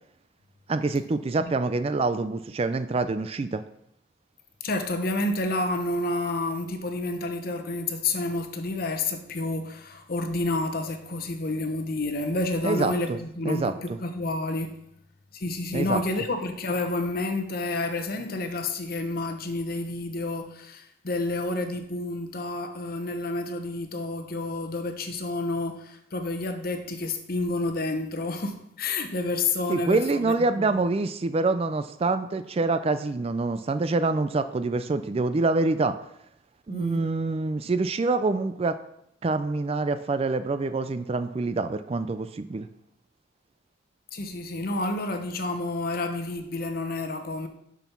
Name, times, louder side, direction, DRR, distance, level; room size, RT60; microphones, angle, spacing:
voice 1, 0.7-3.6 12.6-13.2 13.4-14.0 15.7-16.0 29.7-35.9 36.7-38.8 39.2-42.7, right 3 dB, 30° right, 11 dB, 0.3 m, -26 dB
voice 2, 4.6-14.7 15.3-30.7 36.7-37.0 44.1-47.5, left 2 dB, 45° left, 7 dB, 0.9 m, -29 dB
6.8 x 6.2 x 5.9 m, 0.77 s
head